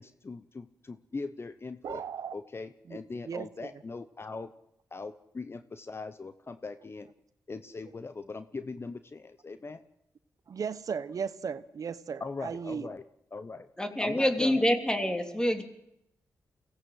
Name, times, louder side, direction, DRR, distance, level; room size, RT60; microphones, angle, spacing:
voice 1, 0.0-2.0 2.3-4.5 4.9-7.1 7.5-9.8 12.2-13.0 13.3-13.7 14.0-14.7, left 3 dB, 40° left, 11 dB, 0.9 m, -40 dB
sound 1, 1.8-2.4, right 8 dB, 85° right, 0.9 m, -37 dB
voice 2, 3.3-3.7 10.5-12.9, right 6 dB, 65° right, 14 dB, 0.8 m, -36 dB
voice 3, 13.8-15.6, left 1 dB, 10° left, 6 dB, 3.2 m, -26 dB
23.5 x 17.0 x 8.0 m, 0.82 s
cardioid pair, 55°, 6 cm